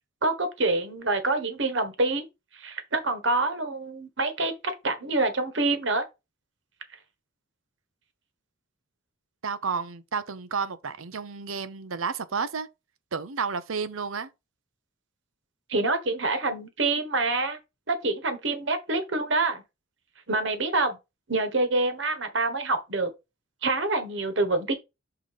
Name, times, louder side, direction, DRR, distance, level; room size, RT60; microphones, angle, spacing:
voice 1, 0.2-2.3 2.5-6.0 15.7-17.6 17.9-19.6 20.3-21.0 21.3-23.1 23.6-24.8, right 2 dB, 65° right, 1.4 m, -26 dB
voice 2, 9.4-12.7 13.1-14.3, right 5 dB, 90° right, 0.8 m, -31 dB
5.9 x 3.9 x 4.8 m
head